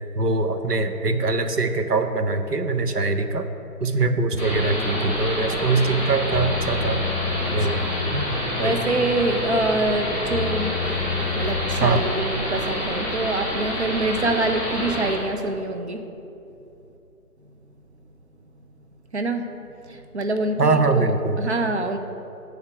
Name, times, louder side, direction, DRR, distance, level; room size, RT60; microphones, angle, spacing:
voice 1, 0.1-3.5 3.8-7.1 7.5-7.8 8.1-8.3 8.6-8.8 11.8-12.0 20.6-21.4, right 3 dB, 80° right, 8 dB, 0.8 m, -22 dB
sound 1, 4.3-12.4, left 7 dB, 50° left, 0.6 m, -32 dB
sound 2, 4.4-15.1, equal, 10° right, 1.9 m, -28 dB
voice 2, 7.4-7.9 8.6-10.8 11.3-16.0 19.1-19.5 19.9-22.0, right 2 dB, 45° right, 6 dB, 0.6 m, -25 dB
9.3 x 3.6 x 6.8 m, 2.8 s
figure-of-eight pair, 145°, 46 cm